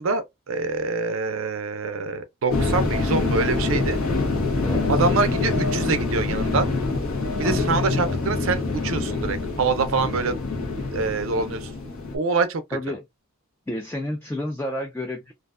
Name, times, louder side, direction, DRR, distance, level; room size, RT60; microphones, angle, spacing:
voice 1, 0.0-4.0 4.9-6.7 7.4-10.4 10.9-11.7 12.1-12.8, right 4 dB, 65° right, 0.4 m, -25 dB
sound 1, 2.5-12.2, left 3 dB, 75° left, 0.8 m, -25 dB
voice 2, 7.4-7.7 12.7-13.0 13.7-15.3, left 1 dB, 10° left, 0.3 m, -30 dB
2.5 x 2.1 x 2.4 m
head